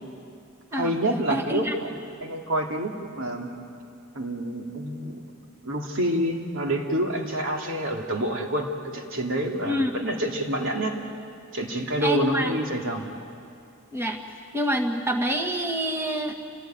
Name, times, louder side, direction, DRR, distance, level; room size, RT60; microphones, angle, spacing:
voice 1, 0.7-3.5 4.1-5.2 5.6-10.9 11.5-13.1, right 1 dB, 60° right, 1 dB, 2.8 m, -28 dB
voice 2, 1.3-1.8 9.7-9.9 12.0-12.6 13.9-14.2 14.5-16.3, equal, 10° right, 2 dB, 1.8 m, -26 dB
29.5 x 17.5 x 9.3 m, 2.5 s
head